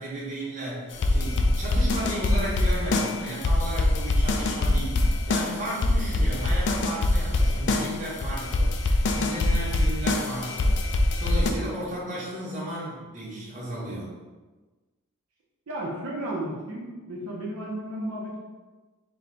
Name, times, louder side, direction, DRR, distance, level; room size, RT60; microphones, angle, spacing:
voice 1, 0.0-10.7 11.2-14.1, right 1 dB, 35° right, -7 dB, 1.4 m, -34 dB
sound 1, 0.9-11.5, left 2 dB, 55° left, 0.4 m, -24 dB
voice 2, 15.7-18.4, right 1 dB, 75° right, -5 dB, 0.8 m, -33 dB
4.8 x 2.2 x 3.8 m, 1.3 s
head